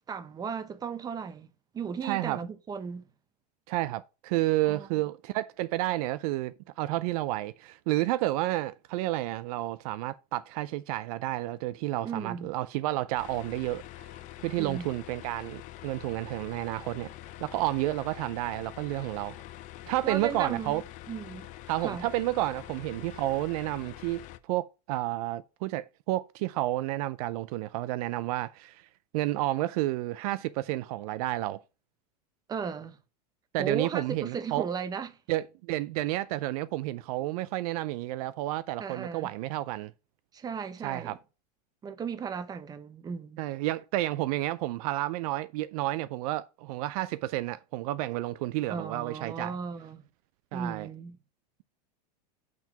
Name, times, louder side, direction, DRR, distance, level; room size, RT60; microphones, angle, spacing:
voice 1, 0.1-3.1 4.7-4.9 12.0-12.5 14.6-14.9 20.0-21.5 21.8-22.1 32.5-33.0 33.6-35.1 38.8-39.4 40.3-41.2 41.8-43.4 48.7-50.0 50.5-51.2, right 6 dB, 20° right, 0.7 m, -36 dB
voice 2, 2.0-2.4 3.7-14.1 14.4-17.1 17.4-19.4 19.9-20.8 21.7-28.9 29.1-31.6 33.5-34.7 35.3-39.9 40.8-41.2 43.4-49.5 50.5-50.9, right 16 dB, 60° right, 0.4 m, -31 dB
sound 1, 13.2-24.4, left 15 dB, 35° left, 0.5 m, -45 dB
6.0 x 4.4 x 5.7 m
supercardioid pair, 135°, 21 cm